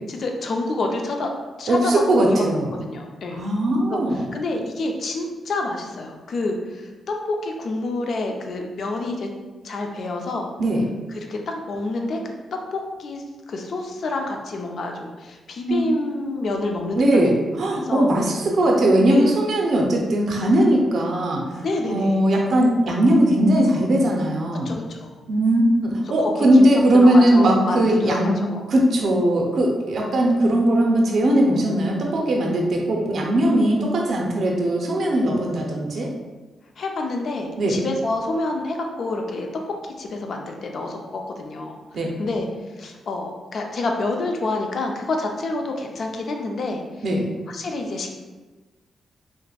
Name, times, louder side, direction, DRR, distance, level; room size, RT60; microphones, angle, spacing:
voice 1, 0.1-1.3 1.6-2.4 2.8-3.4 3.9-9.3 9.6-10.5 11.1-12.2 12.5-17.3 17.6-18.1 19.1-19.3 21.6-22.2 24.6-25.1 26.2-26.7 27.0-28.6 36.8-42.5 42.8-46.8 47.5-48.2, left 2 dB, 65° left, 2 dB, 0.4 m, -28 dB
voice 2, 1.7-2.7 3.3-4.2 10.6-10.8 15.7-15.8 17.0-21.6 21.9-24.8 25.3-28.3 28.7-36.1 37.6-37.8 41.9-42.1 47.0-47.3, right 1 dB, 65° right, 0 dB, 0.4 m, -19 dB
3.2 x 2.0 x 2.3 m, 1.2 s
cardioid pair, 65°, 0 cm